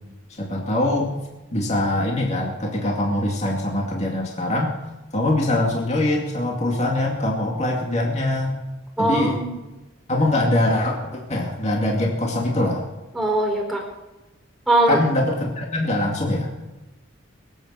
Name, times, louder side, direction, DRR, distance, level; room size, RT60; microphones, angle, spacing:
voice 1, 0.3-4.7 5.1-8.6 9.0-9.4 10.1-12.8 14.9-16.6, left 1 dB, 35° left, -1 dB, 2.3 m, -23 dB
voice 2, 9.0-9.5 13.1-13.8 14.7-15.0, right 1 dB, ahead, 1 dB, 4.1 m, -21 dB
23.0 x 8.6 x 6.8 m, 1.1 s
head